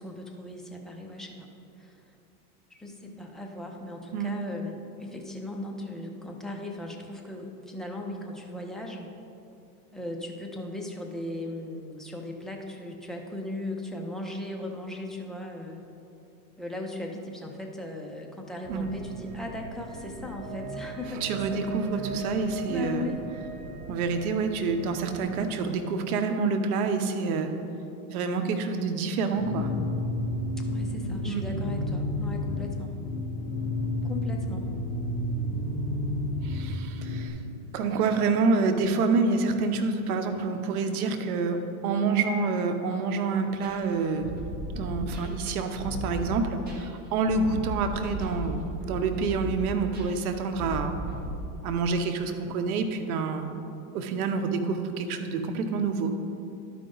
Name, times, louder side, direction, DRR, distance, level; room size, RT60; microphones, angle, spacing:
voice 1, 0.0-1.5 1.8-2.2 2.7-9.1 9.9-15.8 16.6-23.2 30.6-32.9 34.0-34.7, left 2 dB, ahead, 0 dB, 0.7 m, -38 dB
sound 1, 18.6-25.5, right 4 dB, 40° right, 1.0 m, -40 dB
voice 2, 21.2-23.1 23.9-27.5 28.1-29.7 31.2-31.4 36.4-37.3 37.7-44.3 44.7-50.9 51.6-53.5 53.9-56.1, right 4 dB, 75° right, 7 dB, 1.0 m, -27 dB
sound 2, 29.3-37.3, left 1 dB, 15° left, 1.6 m, -31 dB
sound 3, 43.6-51.4, equal, 20° right, 1.9 m, -36 dB
12.0 x 5.1 x 3.9 m, 2.7 s
supercardioid pair, 120°, 44 cm